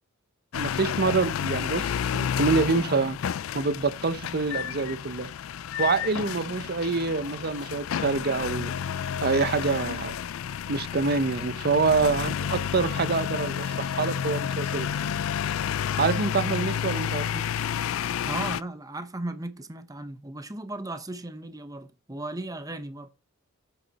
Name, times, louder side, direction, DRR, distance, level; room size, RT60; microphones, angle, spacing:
sound 1, 0.5-18.6, left 8 dB, 85° left, 0.4 m, -30 dB
voice 1, 0.5-3.2 3.5-5.3 5.8-8.7 9.2-10.2 10.7-15.2 16.0-17.4, right 4 dB, 50° right, 0.8 m, -26 dB
voice 2, 18.3-23.1, right 2 dB, 20° right, 1.0 m, -36 dB
8.1 x 7.9 x 4.2 m
head